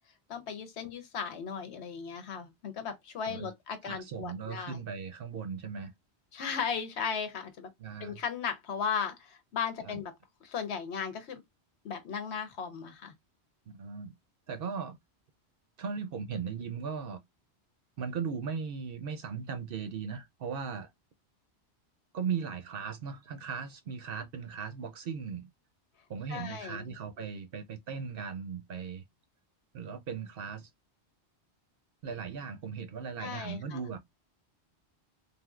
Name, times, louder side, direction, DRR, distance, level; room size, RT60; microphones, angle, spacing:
voice 1, 0.3-4.8 6.3-7.7 8.0-10.1 10.4-11.4 11.8-13.1 26.3-26.9 33.2-33.8, left 6 dB, 75° left, 1.1 m, -36 dB
voice 2, 3.9-5.9 7.8-8.2 9.8-10.0 13.7-14.1 14.5-15.0 15.8-17.2 18.0-20.9 22.1-25.5 26.1-29.0 29.7-30.7 32.0-34.0, right 6 dB, 65° right, 0.7 m, -38 dB
3.4 x 2.6 x 2.3 m
omnidirectional pair, 1.1 m